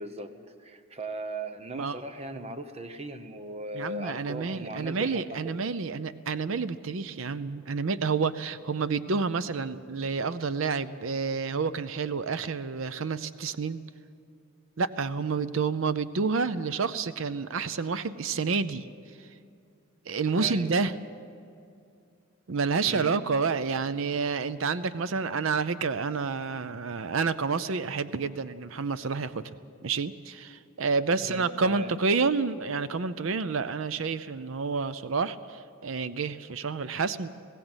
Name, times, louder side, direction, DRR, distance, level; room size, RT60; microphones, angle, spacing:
voice 1, 0.0-5.6 20.4-20.8 22.9-23.2 31.2-31.9, right 1 dB, 30° right, 9 dB, 1.0 m, -38 dB
voice 2, 3.7-13.8 14.8-18.9 20.1-20.9 22.5-29.3 29.8-37.3, right 4 dB, 65° right, 13 dB, 0.6 m, -29 dB
20.0 x 16.0 x 8.0 m, 2.4 s
head